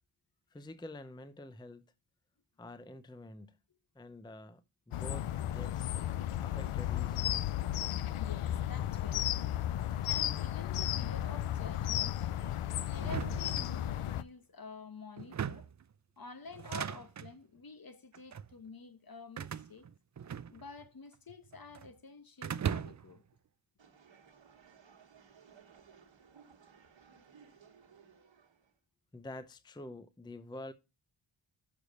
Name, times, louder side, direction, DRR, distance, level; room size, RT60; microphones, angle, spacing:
voice 1, 0.5-1.9 2.6-3.6 4.0-5.9 6.4-7.5 29.1-30.7, left 1 dB, 10° left, 0.6 m, -48 dB
sound 1, 4.9-14.2, left 12 dB, 80° left, 0.6 m, -34 dB
voice 2, 8.2-9.5 10.0-12.3 12.8-15.7 16.2-19.9 20.5-23.2, left 4 dB, 45° left, 1.1 m, -49 dB
sound 2, 13.0-14.2 15.2-15.8 16.5-17.3 18.1-18.5 19.4-20.9 21.1-21.9 22.4-23.2, right 8 dB, 35° right, 0.4 m, -39 dB
sound 3, 23.8-28.7, right 6 dB, 65° right, 1.4 m, -60 dB
6.7 x 4.9 x 6.4 m
cardioid pair, 50°, 50 cm